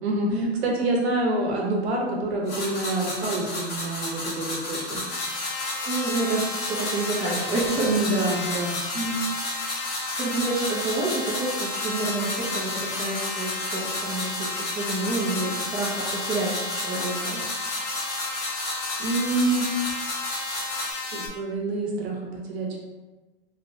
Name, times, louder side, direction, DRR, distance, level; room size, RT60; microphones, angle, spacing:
voice 1, 0.0-0.3 0.6-5.0 7.8-8.8 19.0-19.6 21.1-22.8, right 2 dB, 85° right, -1 dB, 0.8 m, -26 dB
sound 1, 2.5-20.9, left 1 dB, 35° left, 0.8 m, -33 dB
sound 2, 5.1-21.3, left 3 dB, 60° left, 0.7 m, -34 dB
voice 2, 5.8-7.9 8.3-8.6 8.9-9.2 9.6-9.8 10.2-17.4, right 2 dB, 15° right, -8 dB, 0.4 m, -29 dB
2.8 x 2.1 x 2.6 m, 1.2 s
supercardioid pair, 130°, 31 cm